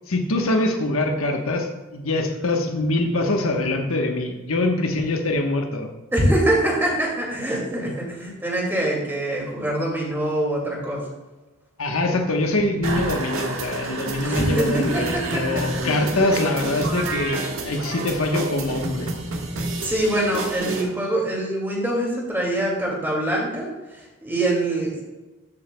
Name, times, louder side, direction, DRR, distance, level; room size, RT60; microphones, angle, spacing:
voice 1, 0.1-5.9 11.8-19.2, left 2 dB, 85° left, 3 dB, 1.2 m, -24 dB
voice 2, 6.1-11.0 14.2-15.8 19.6-25.0, right 1 dB, 10° right, -2 dB, 2.3 m, -24 dB
sound 1, 12.8-20.8, right 2 dB, 75° right, 1.6 m, -29 dB
13.0 x 7.9 x 2.3 m, 1.2 s
head